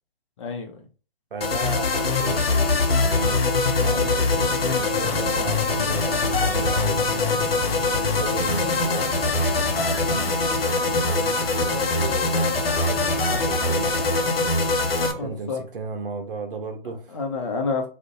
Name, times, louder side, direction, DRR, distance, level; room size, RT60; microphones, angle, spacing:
voice 1, 0.4-0.8 3.9-4.1 15.1-15.6 17.1-17.9, left 4 dB, 35° left, 0.5 m, -29 dB
voice 2, 1.3-3.4 3.8-7.4 8.2-12.5 12.8-14.1 15.2-17.2, right 4 dB, 65° right, 0.6 m, -35 dB
sound 1, 1.4-15.1, left 3 dB, 85° left, 0.5 m, -23 dB
sound 2, 3.7-15.4, right 1 dB, 30° right, 1.1 m, -37 dB
2.4 x 2.1 x 2.5 m
figure-of-eight pair, 130°, 29 cm